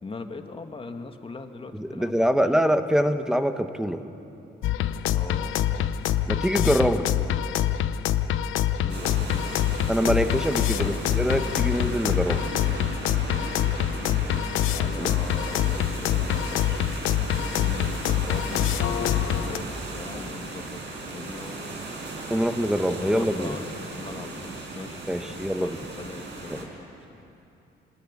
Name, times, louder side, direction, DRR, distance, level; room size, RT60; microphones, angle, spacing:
voice 1, 0.0-2.6 5.1-5.9 6.6-7.4 8.8-9.7 10.7-11.0 13.9-16.9 17.5-21.9 23.0-26.9, left 3 dB, 25° left, 5 dB, 2.1 m, -41 dB
voice 2, 1.7-4.0 6.3-7.1 9.9-12.4 15.0-15.1 22.3-23.5 25.1-25.8 26.5-26.6, equal, 5° right, 8 dB, 1.5 m, -24 dB
sound 1, 4.6-19.6, left 11 dB, 80° left, 0.9 m, -25 dB
sound 2, 8.9-26.7, right 3 dB, 60° right, 5.4 m, -37 dB
27.0 x 19.0 x 9.9 m, 2.9 s
cardioid pair, 90°, 20 cm